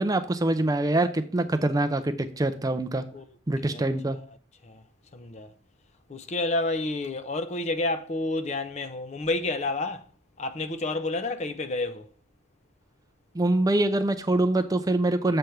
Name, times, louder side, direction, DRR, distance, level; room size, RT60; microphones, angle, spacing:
voice 1, 0.0-3.0 3.5-4.2 13.3-15.4, right 2 dB, 20° right, 0.4 m, -24 dB
voice 2, 5.1-5.5 6.1-10.0 10.4-12.1, left 2 dB, 35° left, 0.5 m, -30 dB
7.7 x 3.4 x 5.7 m
head